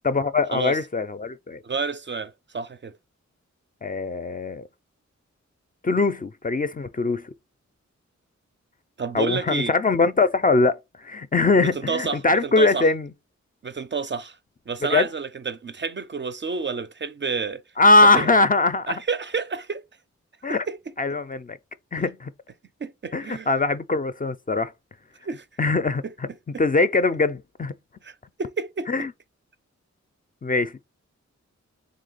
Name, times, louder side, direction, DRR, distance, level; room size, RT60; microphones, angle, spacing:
voice 1, 0.0-1.6 3.8-4.6 5.8-7.2 9.1-10.8 11.0-13.1 14.9-15.1 17.8-19.0 20.4-20.6 21.0-21.6 21.9-22.3 23.1-24.7 25.6-26.3 26.6-27.7 28.9-29.1 30.4-30.7, left 3 dB, 30° left, 0.4 m, -21 dB
voice 2, 1.6-3.0 9.0-9.7 11.6-12.9 13.6-14.4 14.7-17.6 18.0-18.4 18.9-19.9 20.5-20.8 21.1-21.2 22.8-23.5 25.2-25.4 26.0-26.1 28.0-28.9, right 5 dB, 40° right, 0.4 m, -30 dB
3.7 x 2.8 x 3.9 m
wide cardioid pair, 70°, 29 cm